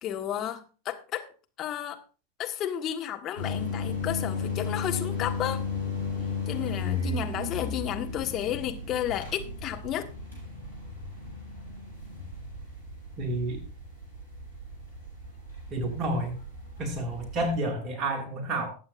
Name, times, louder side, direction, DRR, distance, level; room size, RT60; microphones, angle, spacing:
voice 1, 0.0-1.3 1.6-2.0 2.4-5.6 6.5-10.1, left 11 dB, 30° left, 1.5 m, -32 dB
sound 1, 3.4-17.6, left 4 dB, 90° left, 7.3 m, -35 dB
voice 2, 13.2-13.6 15.7-16.4 16.8-18.7, right 1 dB, 30° right, 2.3 m, -30 dB
20.0 x 8.0 x 2.6 m
figure-of-eight pair, 90°, 0 cm